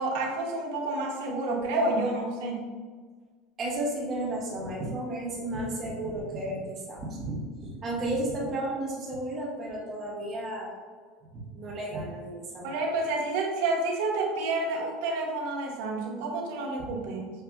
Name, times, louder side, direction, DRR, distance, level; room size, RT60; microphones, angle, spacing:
voice 1, 0.0-2.7 12.6-17.3, right 2 dB, 75° right, -1 dB, 0.8 m, -29 dB
voice 2, 3.6-10.7 11.5-12.8, right 1 dB, 30° right, -4 dB, 1.0 m, -33 dB
5.6 x 2.6 x 2.3 m, 1.5 s
cardioid pair, 160°, 0 cm